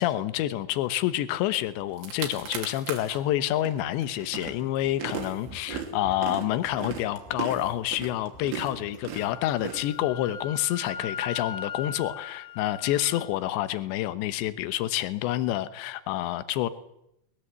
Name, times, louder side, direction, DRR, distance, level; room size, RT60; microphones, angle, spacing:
voice 1, 0.0-16.7, left 13 dB, 75° left, 14 dB, 3.1 m, -28 dB
sound 1, 1.6-1.7 1.9-3.2 3.6-10.4, right 7 dB, 75° right, 5.3 m, -37 dB
Wind instrument woodwind instrument, 9.2-13.3, left 6 dB, 35° left, 3.6 m, -39 dB
24.0 x 20.5 x 8.1 m, 0.82 s
omnidirectional pair, 5.5 m